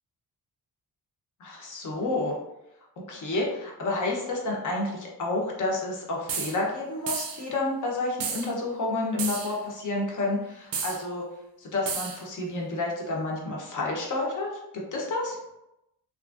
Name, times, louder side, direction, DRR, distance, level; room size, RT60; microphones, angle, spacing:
voice 1, 1.4-2.3 3.1-11.2 11.6-15.4, left 2 dB, 50° left, -2 dB, 0.7 m, -30 dB
sound 1, 6.3-6.6 7.1-7.4 8.2-8.5 9.2-9.6 10.7-11.0 11.9-12.2, right 6 dB, 60° right, 0.5 m, -32 dB
2.8 x 2.5 x 2.3 m, 0.88 s
wide cardioid pair, 160°, 40 cm